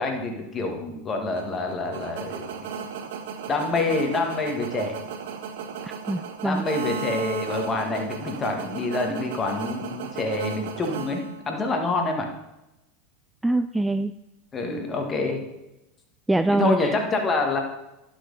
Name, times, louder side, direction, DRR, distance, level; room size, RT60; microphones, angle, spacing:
voice 1, 0.0-2.5 3.5-5.0 6.4-12.3 14.5-15.4 16.5-17.6, left 3 dB, 25° left, 3 dB, 1.9 m, -27 dB
sound 1, 1.3-11.8, right 5 dB, 70° right, 0.9 m, -35 dB
voice 2, 5.8-6.7 13.4-14.1 16.3-16.9, right 2 dB, 10° right, 11 dB, 0.3 m, -24 dB
11.0 x 6.2 x 4.1 m, 0.94 s
hypercardioid pair, 95°, 0 cm